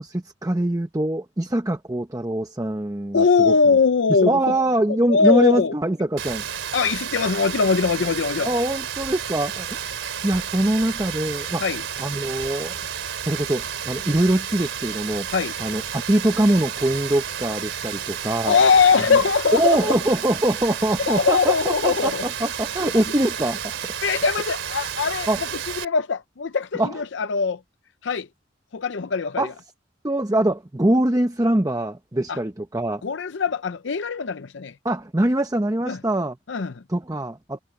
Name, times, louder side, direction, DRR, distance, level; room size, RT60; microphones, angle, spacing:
voice 1, 0.0-3.5 4.2-6.5 8.5-11.6 12.0-12.8 13.2-15.3 15.6-18.6 19.1-19.2 19.5-23.8 25.3-25.4 26.8-27.0 29.4-29.5 30.0-33.0 34.8-36.4 36.9-37.6, right 1 dB, 15° right, 0.7 m, -23 dB
voice 2, 3.1-4.5 5.1-5.7 6.7-8.5 11.6-11.8 15.3-15.5 18.5-20.0 21.1-22.2 22.8-22.9 24.0-25.3 25.8-27.6 28.0-28.3 28.7-29.5 32.3-32.4 33.0-34.7 35.9-36.0 36.5-36.7, left 5 dB, 70° left, 0.6 m, -21 dB
Rain, 6.2-25.8, right 8 dB, 80° right, 3.1 m, -31 dB
head